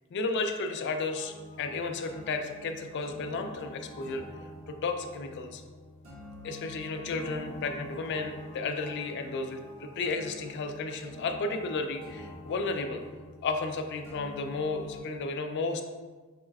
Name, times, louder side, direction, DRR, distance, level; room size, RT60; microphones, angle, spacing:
voice 1, 0.1-4.2 4.7-5.6 6.4-13.0 13.4-15.8, left 3 dB, 55° left, 5 dB, 0.3 m, -33 dB
sound 1, 1.1-15.0, left 1 dB, 75° right, 0.9 m, -47 dB
4.2 x 2.3 x 3.2 m, 1.4 s
head